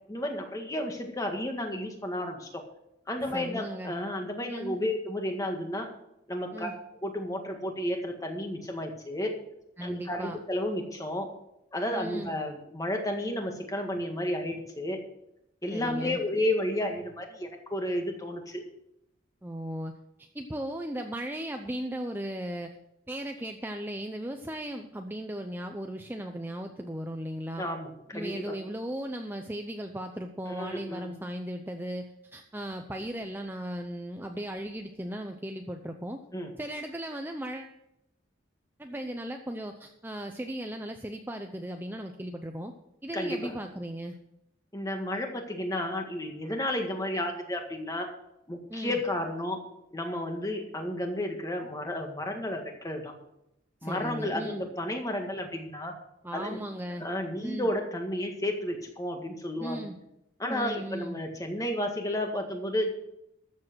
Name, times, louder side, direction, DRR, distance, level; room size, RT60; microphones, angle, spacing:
voice 1, 0.1-2.6 3.1-5.9 6.3-6.7 7.0-9.3 9.8-11.3 11.7-15.0 15.6-18.6 27.6-28.6 30.5-31.2 36.3-36.5 43.1-43.5 44.7-48.1 48.5-53.1 53.8-56.0 56.3-56.6 56.9-59.9 60.4-62.9, left 1 dB, 15° left, 3 dB, 1.7 m, -32 dB
voice 2, 3.2-3.9 4.5-4.8 6.5-6.7 9.8-10.4 11.9-12.3 15.7-16.2 19.4-19.9 20.2-22.7 23.1-27.6 28.1-36.2 36.6-37.8 38.8-42.7 43.0-44.2 48.7-49.0 53.8-54.6 56.2-57.1 57.4-57.7 59.6-60.0 60.5-61.2, right 1 dB, 10° right, 4 dB, 0.6 m, -37 dB
13.5 x 7.4 x 6.2 m, 0.82 s
head